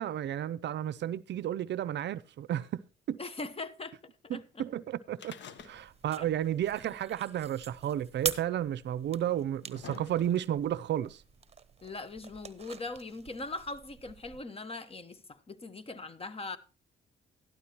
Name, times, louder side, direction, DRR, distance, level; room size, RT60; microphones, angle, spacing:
voice 1, 0.0-2.8 3.1-3.2 4.3-5.3 5.6-11.2, right 11 dB, 65° right, 0.5 m, -32 dB
voice 2, 3.2-4.0 4.2-4.7 6.2-6.3 11.8-16.6, left 3 dB, 30° left, 1.2 m, -41 dB
sound 1, 5.1-6.2 6.4-6.5 7.5-7.6 8.5-8.6 9.3-10.6 11.5-11.6, left 7 dB, 65° left, 1.2 m, -48 dB
sound 2, 5.6-14.4, right 6 dB, 30° right, 1.0 m, -44 dB
13.0 x 11.5 x 2.9 m
cardioid pair, 90°, 20 cm